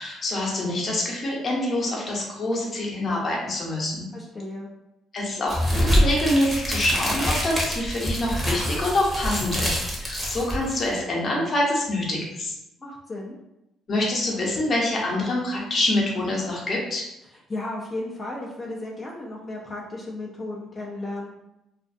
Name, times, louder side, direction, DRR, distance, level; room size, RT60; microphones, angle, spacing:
voice 1, 0.0-4.1 5.1-12.6 13.9-17.0, left 1 dB, 45° left, -2 dB, 0.8 m, -26 dB
voice 2, 4.1-4.7 12.8-13.4 17.5-21.3, left 2 dB, 25° left, -3 dB, 0.4 m, -34 dB
sound 1, 5.5-11.0, equal, 15° right, 0.8 m, -25 dB
2.5 x 2.3 x 2.5 m, 0.90 s
cardioid pair, 85°, 0 cm